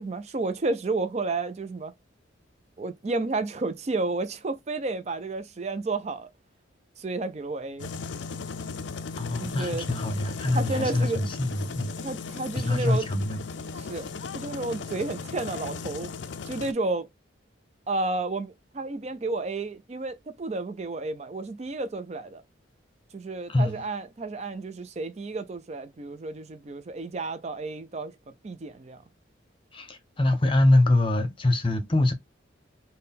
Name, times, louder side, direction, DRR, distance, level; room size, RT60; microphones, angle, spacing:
voice 1, 0.0-1.9 2.8-6.3 7.0-7.9 9.4-9.9 10.5-11.3 12.0-13.1 13.7-14.1 14.3-16.1 16.5-17.1 17.9-22.4 23.1-28.1 28.4-29.0, right 3 dB, 35° right, 0.4 m, -31 dB
sound 1, 7.8-16.7, left 4 dB, 65° left, 0.4 m, -37 dB
voice 2, 9.2-11.9 12.6-13.4 23.5-23.8 29.7-32.1, left 2 dB, 25° left, 0.7 m, -24 dB
3.7 x 2.2 x 4.1 m
head